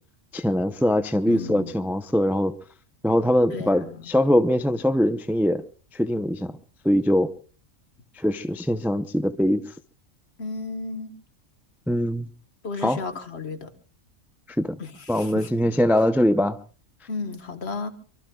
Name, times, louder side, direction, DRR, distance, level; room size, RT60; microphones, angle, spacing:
voice 1, 0.3-2.5 3.0-5.6 5.9-6.5 6.8-7.3 8.2-9.6 11.9-12.3 12.8-13.0 14.6-14.7 15.1-16.6, equal, 5° right, 0.4 m, -22 dB
voice 2, 1.3-1.8 3.5-4.0 10.4-11.1 12.6-13.7 14.8-15.5 17.1-17.9, left 4 dB, 55° left, 1.7 m, -33 dB
25.0 x 23.5 x 2.3 m
omnidirectional pair, 1.3 m